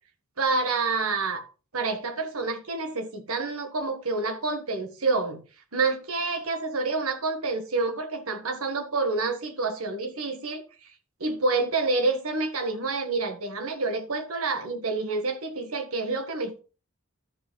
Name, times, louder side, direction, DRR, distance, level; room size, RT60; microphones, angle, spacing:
voice 1, 0.4-1.4 1.7-5.4 5.7-10.6 11.2-16.6, right 3 dB, 90° right, 1.6 m, -28 dB
13.0 x 5.0 x 3.9 m
head